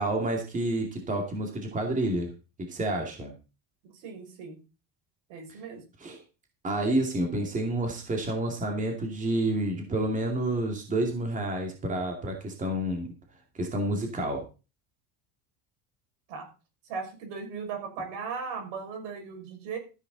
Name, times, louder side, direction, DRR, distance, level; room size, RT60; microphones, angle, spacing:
voice 1, 0.0-2.3 2.6-3.3 5.5-5.6 6.0-6.2 6.6-13.1 13.6-14.4, right 1 dB, 15° right, 3 dB, 2.5 m, -29 dB
voice 2, 3.8-4.6 5.3-5.8 16.3-16.5 16.9-19.8, right 5 dB, 70° right, 3 dB, 6.2 m, -37 dB
14.0 x 10.0 x 4.1 m, 0.32 s
cardioid pair, 165°, 44 cm